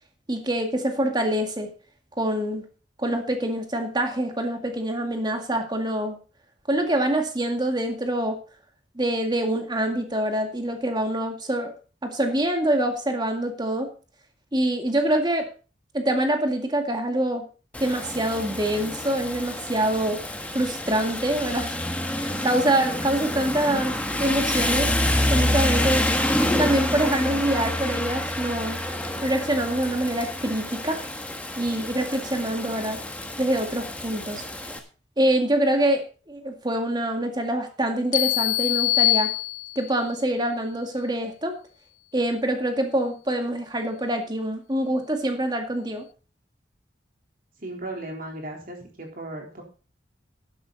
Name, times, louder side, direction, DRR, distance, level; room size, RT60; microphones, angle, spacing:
voice 1, 0.3-1.7 2.2-2.6 3.0-6.2 6.7-8.4 9.0-11.7 12.0-13.9 14.5-15.5 15.9-17.4 17.8-20.2 20.5-21.7 22.4-24.9 25.3-26.1 26.6-28.8 29.2-31.0 31.6-33.0 33.4-34.4 35.2-39.3 39.8-41.6 42.1-46.1, right 1 dB, 25° right, 4 dB, 2.0 m, -25 dB
Rain, 17.7-34.8, left 1 dB, 10° left, 1.4 m, -28 dB
sound 1, 38.1-40.0, left 18 dB, 45° left, 0.7 m, -23 dB
voice 2, 47.6-49.6, right 2 dB, 50° right, 1 dB, 3.8 m, -36 dB
12.0 x 10.5 x 4.1 m, 0.36 s
head